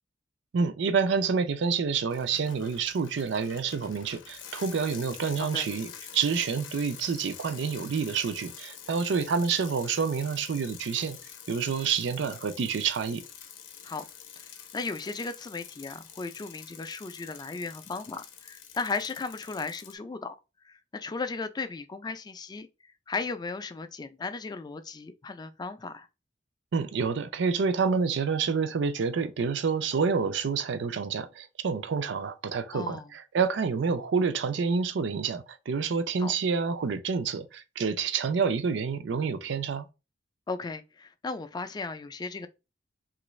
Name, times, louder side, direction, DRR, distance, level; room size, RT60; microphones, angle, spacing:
voice 1, 0.5-11.2 11.5-13.2 26.7-39.9, right 5 dB, 70° right, 0.4 m, -28 dB
Bicycle, 2.1-19.9, left 8 dB, 90° left, 0.6 m, -47 dB
voice 2, 14.4-20.4 20.6-26.1 32.7-33.1 36.2-36.3 40.5-42.5, left 4 dB, 20° left, 0.3 m, -36 dB
3.0 x 2.5 x 3.1 m
head